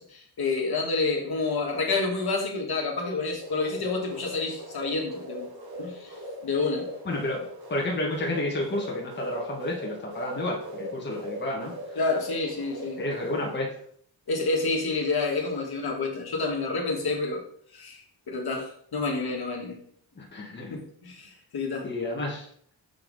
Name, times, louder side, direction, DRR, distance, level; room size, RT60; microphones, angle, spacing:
voice 1, 0.0-5.5 5.8-6.1 6.4-6.9 12.0-13.0 14.3-17.4 17.7-18.0 18.3-19.8 20.7-21.9, left 3 dB, 55° left, 0 dB, 1.8 m, -29 dB
sound 1, 3.4-13.6, equal, 55° right, 1.6 m, -40 dB
voice 2, 7.0-11.7 13.0-13.7 20.1-20.8 21.8-22.5, left 1 dB, 25° left, -2 dB, 1.5 m, -31 dB
6.6 x 5.6 x 4.0 m, 0.63 s
wide cardioid pair, 135°, 44 cm